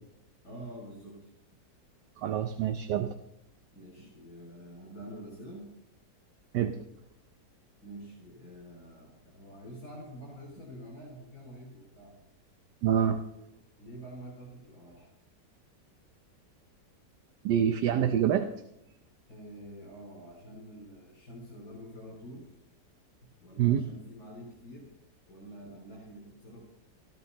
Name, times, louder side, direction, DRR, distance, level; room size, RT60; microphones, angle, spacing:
voice 1, 0.4-1.3 3.7-5.7 7.8-12.1 13.8-15.1 19.3-22.6 23.2-24.9 25.3-26.6, right 1 dB, 55° left, -5 dB, 6.7 m, -47 dB
voice 2, 2.2-3.1 6.5-6.8 12.8-13.2 17.4-18.5 23.6-23.8, right 9 dB, 80° right, 7 dB, 1.3 m, -26 dB
23.0 x 15.0 x 3.0 m, 0.83 s
omnidirectional pair, 1.9 m